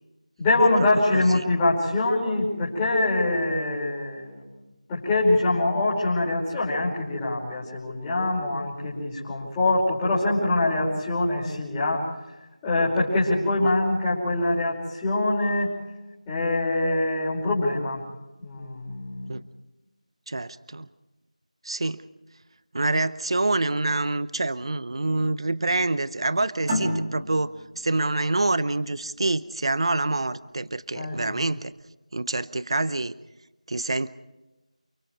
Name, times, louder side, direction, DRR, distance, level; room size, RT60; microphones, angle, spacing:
voice 1, 0.4-4.4 4.9-12.1 12.6-15.7 16.3-18.0 18.4-19.4 30.9-31.4, left 2 dB, 10° left, -7 dB, 5.3 m, -24 dB
voice 2, 1.1-1.4 13.6-13.7 19.3-19.4 20.3-20.9 21.6-22.0 22.7-31.7 32.1-33.1 33.7-34.1, right 2 dB, 45° right, 16 dB, 0.8 m, -26 dB
sound 1, 26.7-29.9, equal, 20° right, 5.6 m, -31 dB
29.5 x 22.5 x 4.8 m, 1.0 s
figure-of-eight pair, 175°, 4 cm